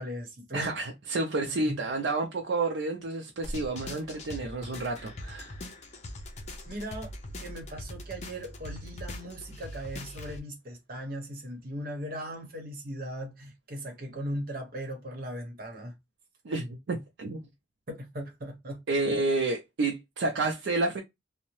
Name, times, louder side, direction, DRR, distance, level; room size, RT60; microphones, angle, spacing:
voice 1, 0.0-0.7 1.7-1.8 6.7-15.9 17.9-18.8, equal, 55° right, 0.9 m, -38 dB
voice 2, 0.5-5.6 16.4-17.4 18.9-21.0, right 2 dB, 85° right, 0.5 m, -30 dB
sound 1, 3.4-10.4, left 1 dB, 40° left, 0.6 m, -41 dB
2.6 x 2.1 x 3.0 m
head